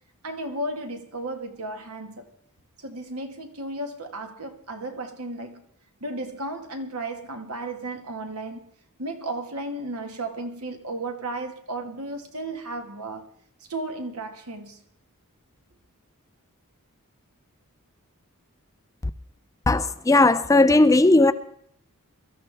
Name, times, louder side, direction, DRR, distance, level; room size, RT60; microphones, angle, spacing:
voice 1, 0.2-2.3 2.8-5.7 6.0-8.6 9.0-13.3 13.7-14.8, right 2 dB, 70° right, 1.7 m, -34 dB
voice 2, 19.7-21.3, left 2 dB, 15° left, 0.5 m, -17 dB
23.0 x 13.5 x 3.5 m
head